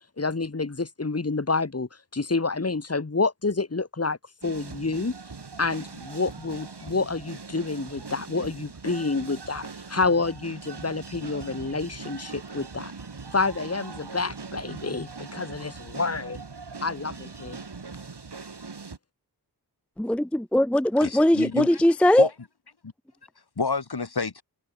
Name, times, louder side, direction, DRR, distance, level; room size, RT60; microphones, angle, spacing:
voice 1, 0.2-4.2 4.4-5.1 5.6-12.9 13.3-16.4 16.8-17.6, left 3 dB, 35° left, 2.1 m, -28 dB
sound 1, 4.4-19.0, right 4 dB, 80° right, 5.4 m, -41 dB
voice 2, 20.0-22.3, left 1 dB, 5° left, 0.4 m, -20 dB
voice 3, 21.0-21.8 22.2-22.3 22.8-22.9 23.6-24.4, left 4 dB, 70° left, 4.0 m, -29 dB
wide cardioid pair, 55°, 40 cm